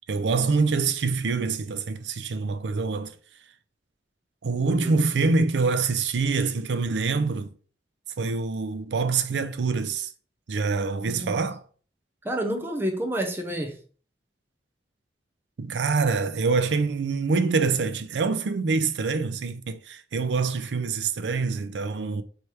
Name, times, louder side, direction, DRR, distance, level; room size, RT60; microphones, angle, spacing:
voice 1, 0.1-3.1 4.4-7.5 8.2-10.1 10.5-11.6 15.6-22.2, right 4 dB, 85° right, 0.5 m, -25 dB
voice 2, 4.6-5.0 11.1-11.4 12.2-13.8, right 1 dB, 15° right, 0.6 m, -29 dB
3.2 x 3.0 x 4.6 m
head